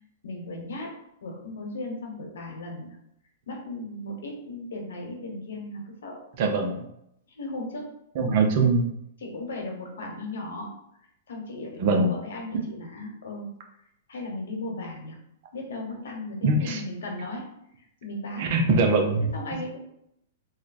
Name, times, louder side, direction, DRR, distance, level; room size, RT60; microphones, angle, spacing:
voice 1, 0.2-0.9 1.2-3.0 3.5-6.2 7.3-7.9 8.2-8.5 9.2-10.7 11.3-13.5 14.1-15.2 15.5-17.5 18.0-18.5 19.2-19.8, left 2 dB, 90° left, 1 dB, 1.1 m, -36 dB
voice 2, 6.4-6.9 8.2-8.9 11.8-12.1 16.4-16.8 18.4-19.3, right 3 dB, 45° right, 3 dB, 0.6 m, -22 dB
3.1 x 2.2 x 4.0 m, 0.77 s
hypercardioid pair, 160°, 0 cm